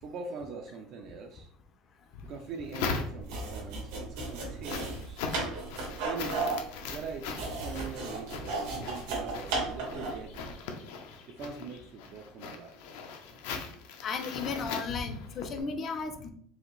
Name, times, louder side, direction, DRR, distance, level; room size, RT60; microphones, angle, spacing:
voice 1, 0.0-1.5 2.2-5.3 6.0-6.5 6.9-10.5 11.3-12.8, right 5 dB, 45° right, 2 dB, 0.4 m, -42 dB
sound 1, 2.1-3.6 4.0-15.6, left 5 dB, 80° left, 0.7 m, -40 dB
sound 2, 3.2-10.3, right 3 dB, 80° right, 1.6 m, -35 dB
voice 2, 14.0-16.3, left 5 dB, 30° left, 7 dB, 0.5 m, -35 dB
4.8 x 2.6 x 3.1 m, 0.62 s
cardioid pair, 170°, 0 cm